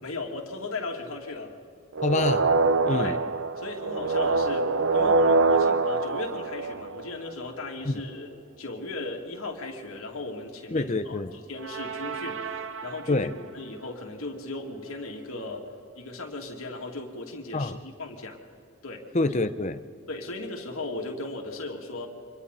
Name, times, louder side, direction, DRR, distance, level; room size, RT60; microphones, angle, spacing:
voice 1, 0.0-1.5 2.9-3.2 3.6-13.3 13.5-15.7 15.9-18.4 18.8-19.1 20.1-22.1, left 2 dB, 80° left, 0 dB, 2.7 m, -37 dB
sound 1, 1.9-7.3 11.6-13.3, right 3 dB, 60° right, 0.7 m, -25 dB
voice 2, 2.0-2.5 2.8-3.1 7.8-8.0 10.7-11.3 13.1-13.3 17.5-17.8 19.1-19.8, left 2 dB, 35° left, 10 dB, 0.7 m, -26 dB
30.0 x 25.5 x 4.2 m, 2.3 s
head